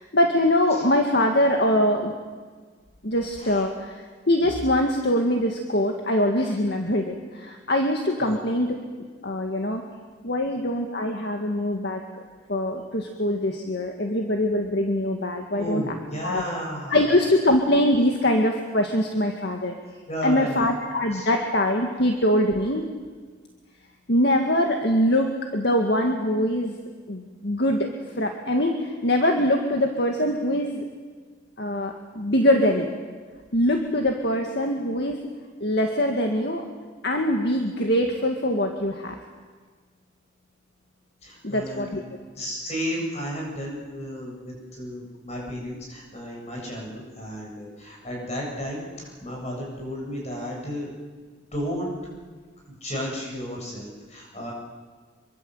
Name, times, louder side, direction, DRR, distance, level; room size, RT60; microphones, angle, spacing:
voice 1, 0.0-2.2 3.0-8.7 9.2-9.8 10.2-12.0 12.5-15.8 16.2-16.4 16.9-19.7 20.2-22.8 24.1-26.7 27.1-27.9 28.2-30.8 31.6-32.9 33.5-35.3 35.6-36.6 37.0-39.2 41.4-42.0, left 1 dB, 55° left, 3 dB, 2.0 m, -23 dB
voice 2, 15.5-17.1 20.1-20.8 21.1-21.3 41.2-42.0 42.4-50.9 51.5-51.9 52.7-54.5, equal, 35° left, -1 dB, 7.9 m, -33 dB
26.0 x 23.5 x 8.0 m, 1.5 s
head